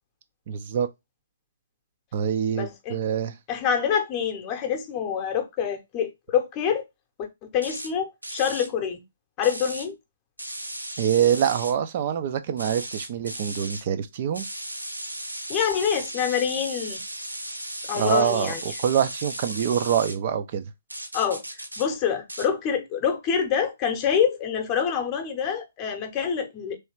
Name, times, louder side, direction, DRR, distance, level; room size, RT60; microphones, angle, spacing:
voice 1, 0.5-0.9 2.1-3.3 11.0-14.5 17.9-20.6, right 9 dB, 35° right, 0.5 m, -25 dB
voice 2, 2.5-3.0 3.5-6.8 7.2-9.0 9.4-10.0 15.5-17.0 17.9-18.6 21.1-26.8, left 7 dB, 25° left, 0.9 m, -26 dB
sound 1, 7.6-7.9 8.2-8.7 9.4-9.9 10.4-11.7 12.6-13.8 14.3-20.2 20.9-21.9 22.3-22.5, right 1 dB, 85° right, 0.8 m, -36 dB
3.2 x 3.2 x 4.5 m
figure-of-eight pair, 130°, 0 cm